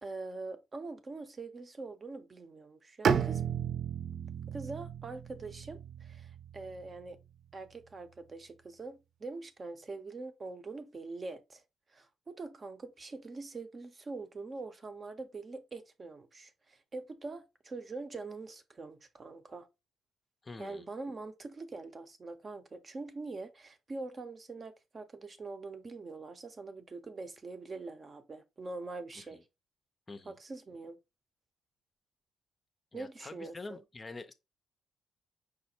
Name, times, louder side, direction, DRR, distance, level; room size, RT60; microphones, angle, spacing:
voice 1, 0.0-3.4 4.5-7.2 7.5-11.6 11.9-19.7 20.6-29.4 30.2-31.0 32.9-33.8, right 3 dB, 35° right, 0.8 m, -44 dB
Bowed string instrument, 3.0-7.0, right 7 dB, 55° right, 0.4 m, -34 dB
voice 2, 20.4-20.8 29.2-29.3 30.1-30.3 32.9-34.3, left 3 dB, 25° left, 0.5 m, -46 dB
4.9 x 2.2 x 4.3 m
cardioid pair, 90°, 0 cm